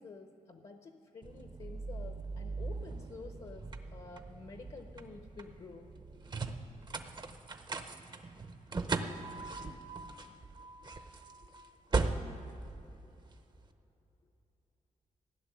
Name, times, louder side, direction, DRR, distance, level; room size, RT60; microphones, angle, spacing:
voice 1, 0.0-5.9 8.8-8.9 10.8-10.9 12.0-12.5, left 4 dB, 45° left, 6 dB, 0.8 m, -50 dB
sound 1, 1.2-13.6, right 3 dB, 35° right, 0.7 m, -39 dB
15.5 x 6.9 x 9.9 m, 3.0 s
wide cardioid pair, 135°, 14 cm